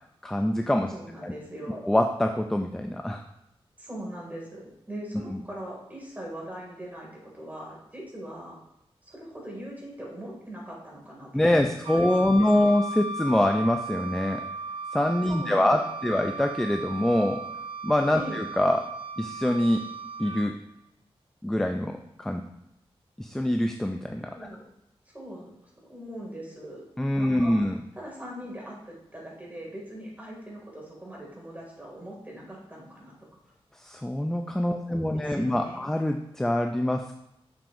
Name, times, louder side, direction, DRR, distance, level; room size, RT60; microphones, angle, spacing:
voice 1, 0.2-0.9 1.2-1.3 1.7-3.2 11.3-14.4 14.9-17.4 17.8-18.9 19.2-19.8 20.2-20.5 21.4-22.4 23.2-24.3 27.0-27.8 33.8-37.1, left 1 dB, 5° left, 4 dB, 0.4 m, -25 dB
voice 2, 0.9-1.8 3.8-8.6 9.0-12.7 15.3-16.2 18.1-18.4 24.3-24.6 25.1-25.5 25.9-26.9 27.2-27.6 27.9-33.1 34.7-35.8, equal, 15° right, -3 dB, 2.3 m, -41 dB
Wind instrument woodwind instrument, 11.8-20.5, right 2 dB, 55° right, 0.7 m, -36 dB
6.7 x 6.0 x 2.6 m, 0.82 s
wide cardioid pair, 125°, 10 cm